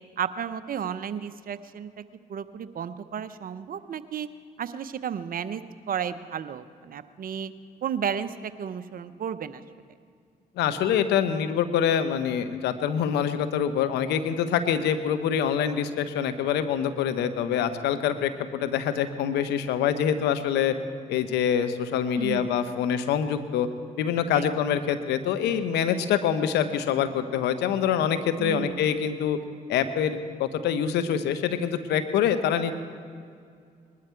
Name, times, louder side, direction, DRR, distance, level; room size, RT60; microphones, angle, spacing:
voice 1, 0.2-2.0 2.3-4.3 4.6-7.5 7.8-9.6 22.2-22.5 24.3-24.5 28.4-28.9, right 8 dB, 55° right, 13 dB, 0.7 m, -33 dB
voice 2, 10.6-20.7 21.1-23.7 24.0-29.4 29.7-32.7, left 8 dB, 80° left, 10 dB, 0.8 m, -25 dB
20.0 x 12.5 x 4.5 m, 2.2 s
hypercardioid pair, 50°, 17 cm